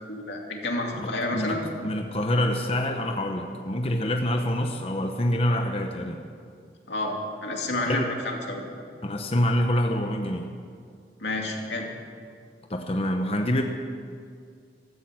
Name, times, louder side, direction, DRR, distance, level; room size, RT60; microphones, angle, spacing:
voice 1, 0.1-1.6 6.9-7.2 7.4-8.7 11.2-11.9, left 2 dB, 90° left, 1 dB, 2.5 m, -30 dB
voice 2, 1.0-6.2 7.9-8.1 9.0-10.5 12.7-13.6, left 1 dB, 35° left, 4 dB, 0.9 m, -26 dB
15.5 x 13.5 x 6.1 m, 2.3 s
head